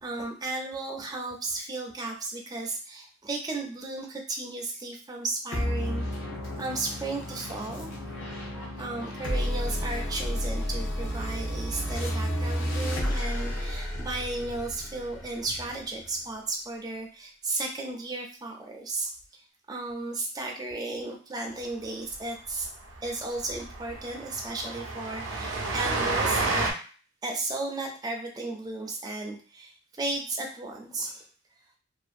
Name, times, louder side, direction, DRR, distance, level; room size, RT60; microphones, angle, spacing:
voice 1, 0.0-6.1 6.6-8.1 8.8-19.4 19.7-22.7 23.0-26.7 27.2-31.3, right 2 dB, 20° right, 1 dB, 0.4 m, -34 dB
sound 1, 5.5-16.3, equal, 65° left, 0.7 m, -32 dB
Train, 22.1-22.2 22.5-22.6 22.9-23.0 23.3-26.7, right 3 dB, 70° right, 0.5 m, -30 dB
2.6 x 2.4 x 2.4 m, 0.39 s
head